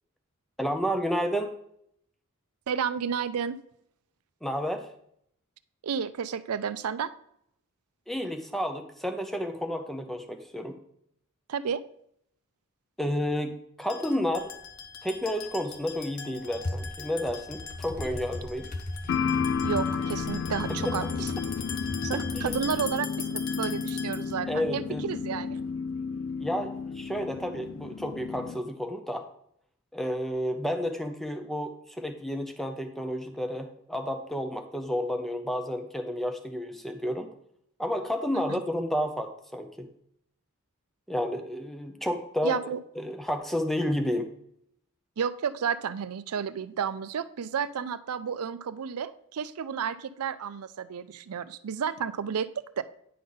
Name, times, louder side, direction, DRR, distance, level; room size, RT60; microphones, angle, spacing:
voice 1, 0.6-1.5 4.4-4.9 8.1-10.8 13.0-14.6 15.0-18.7 20.7-21.0 22.4-22.6 24.5-25.1 26.4-29.3 29.9-37.3 37.8-39.9 41.1-42.7 43.0-44.3, equal, ahead, 6 dB, 0.6 m, -31 dB
voice 2, 2.7-3.6 5.8-7.1 11.5-11.8 19.6-21.3 22.0-25.6 38.5-38.6 42.4-42.8 45.2-52.8, right 7 dB, 90° right, 14 dB, 0.4 m, -31 dB
sound 1, 13.8-24.4, left 6 dB, 70° left, 1.0 m, -42 dB
sound 2, 14.2-14.3 14.6-15.1 15.6-22.9, left 1 dB, 35° left, 0.8 m, -38 dB
sound 3, 19.1-28.6, left 5 dB, 55° left, 0.3 m, -32 dB
9.4 x 5.2 x 3.9 m, 0.70 s
head